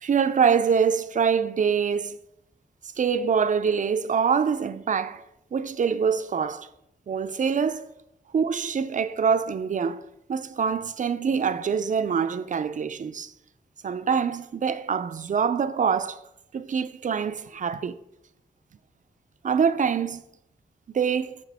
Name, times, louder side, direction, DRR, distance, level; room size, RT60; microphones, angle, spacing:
voice 1, 0.0-2.2 3.0-5.2 5.5-6.7 7.1-7.9 8.3-13.3 13.8-16.2 16.5-18.0 19.4-20.2 20.9-21.4, right 6 dB, 45° right, 0.4 m, -25 dB
7.3 x 5.9 x 3.5 m
wide cardioid pair, 95°, 18 cm